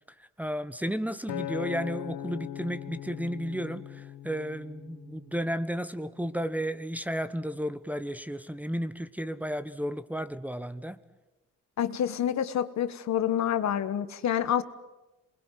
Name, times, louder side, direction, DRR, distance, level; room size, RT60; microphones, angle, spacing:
voice 1, 0.4-11.0, equal, 5° right, 14 dB, 1.1 m, -33 dB
Acoustic guitar, 1.3-5.6 6.2-6.5, left 11 dB, 80° left, 1.3 m, -39 dB
voice 2, 11.8-14.6, left 10 dB, 65° left, 12 dB, 1.5 m, -27 dB
27.5 x 21.0 x 9.4 m, 1.1 s
cardioid pair, 90°, 30 cm